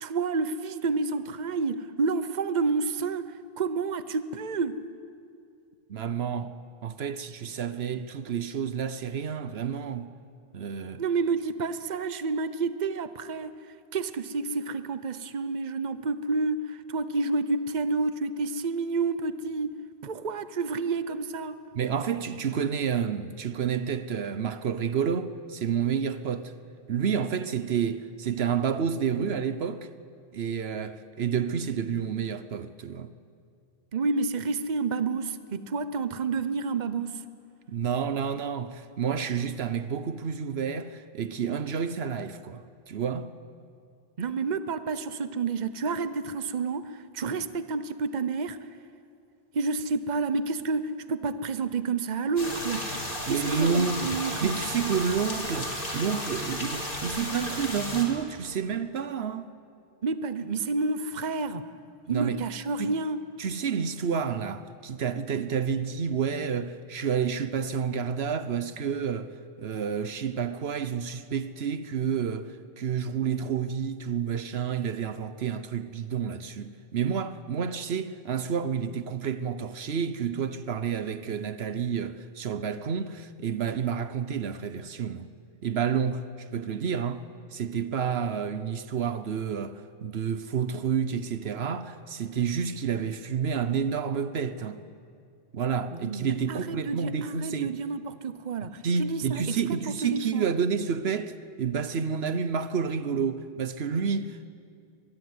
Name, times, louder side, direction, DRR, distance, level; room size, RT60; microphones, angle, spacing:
voice 1, 0.0-4.8 11.0-13.6 13.9-19.7 20.0-21.6 33.9-37.2 44.2-48.6 49.5-52.8 53.3-54.6 60.0-61.6 62.1-63.2 95.9-100.4, right 4 dB, 45° right, 1.0 m, -29 dB
voice 2, 5.9-6.5 6.8-10.1 10.5-11.0 21.7-26.5 26.9-29.9 30.3-33.1 37.7-43.3 53.3-59.5 62.1-62.4 62.8-62.9 63.4-85.3 85.6-87.2 87.5-94.8 95.5-97.8 98.8-104.5, right 7 dB, 75° right, 1.1 m, -30 dB
sound 1, 52.4-58.0, left 1 dB, 55° left, 3.8 m, -33 dB
24.0 x 22.0 x 9.5 m
omnidirectional pair, 1.1 m